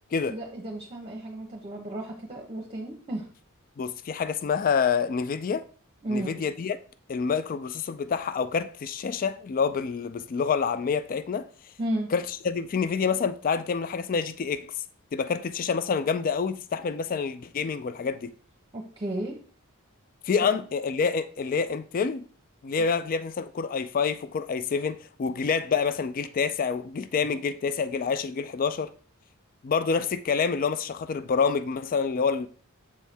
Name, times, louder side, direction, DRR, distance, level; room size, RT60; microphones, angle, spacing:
voice 1, 0.3-3.3 6.0-6.4 11.8-12.1 18.7-19.4, right 1 dB, 25° right, 0.9 m, -33 dB
voice 2, 3.8-5.6 6.1-6.8 7.1-11.5 12.1-14.7 15.1-18.3 20.3-22.3 22.6-28.9 29.6-32.5, left 5 dB, 40° left, 0.3 m, -27 dB
7.2 x 4.5 x 3.4 m
head